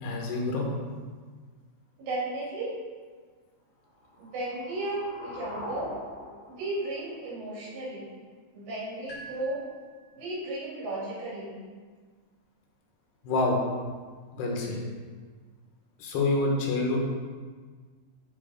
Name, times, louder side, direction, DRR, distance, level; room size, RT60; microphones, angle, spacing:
voice 1, 0.0-0.7 13.2-13.6 14.3-14.8 16.0-17.0, left 2 dB, 70° left, -1 dB, 3.2 m, -27 dB
voice 2, 2.0-2.8 4.2-5.9 6.5-8.1 8.5-9.6 10.1-11.6, right 2 dB, 80° right, -8 dB, 5.2 m, -34 dB
sound 1, 3.9-7.9, left 1 dB, 10° left, 2.2 m, -43 dB
sound 2, 9.1-10.6, right 2 dB, 35° left, 2.3 m, -48 dB
11.0 x 4.8 x 5.1 m, 1.5 s
omnidirectional pair, 5.1 m